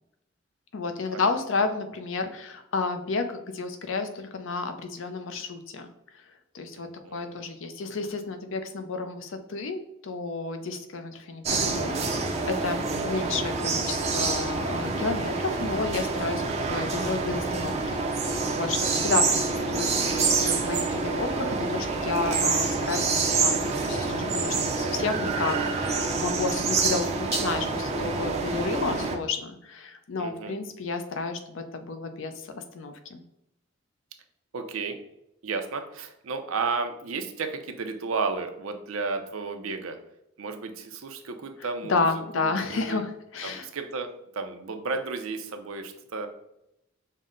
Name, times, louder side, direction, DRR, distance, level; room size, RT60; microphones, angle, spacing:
voice 1, 0.7-5.9 6.5-18.0 18.3-33.2 41.9-43.7, left 4 dB, 65° left, 7 dB, 0.5 m, -31 dB
voice 2, 6.8-7.4 12.6-13.1 19.4-19.6 30.2-30.5 34.5-35.0 35.4-40.0 40.4-43.0 43.4-46.3, right 4 dB, 80° right, 6 dB, 0.6 m, -33 dB
sound 1, 11.4-29.1, right 4 dB, 30° right, 0.4 m, -27 dB
5.4 x 2.1 x 3.7 m, 0.81 s
head